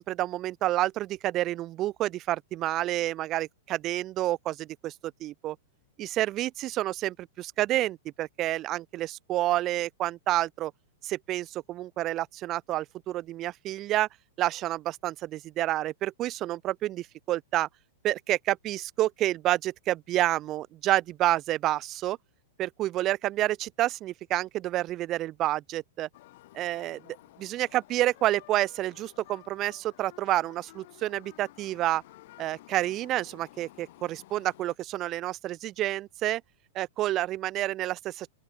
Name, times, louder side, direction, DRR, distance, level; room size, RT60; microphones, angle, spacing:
voice 1, 0.0-4.9 5.2-5.6 6.0-10.7 11.0-14.1 14.4-17.7 18.0-22.2 22.6-26.1 26.5-27.0 27.4-32.0 32.4-36.4 36.7-38.3, right 15 dB, 20° right, 0.4 m, -29 dB
sound 1, 26.1-34.8, left 17 dB, 40° left, 2.0 m, -53 dB
open air
supercardioid pair, 180°, 0 cm